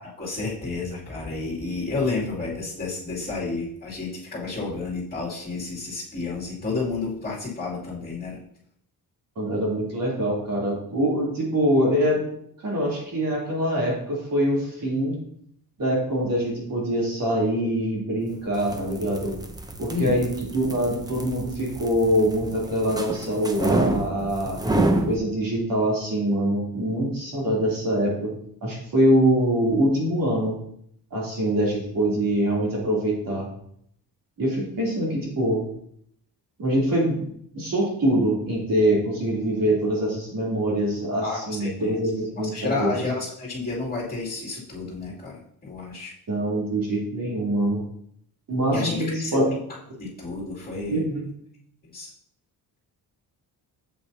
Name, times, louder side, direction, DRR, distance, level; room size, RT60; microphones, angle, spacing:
voice 1, 0.0-8.4 19.9-20.2 41.2-42.0 42.4-46.1 48.7-49.4 50.0-51.0 51.9-52.1, left 3 dB, 25° left, -6 dB, 2.7 m, -31 dB
voice 2, 9.3-12.2 12.6-15.2 15.8-19.4 19.8-24.6 25.1-28.3 28.6-30.5 31.1-33.5 34.4-35.6 36.6-37.2 37.5-43.0 46.3-47.8 48.5-49.5 50.9-51.2, right 1 dB, 55° right, -4 dB, 3.2 m, -24 dB
sound 1, 18.4-25.2, right 2 dB, 10° right, 0.6 m, -28 dB
8.5 x 7.8 x 2.8 m, 0.68 s
wide cardioid pair, 155°, 39 cm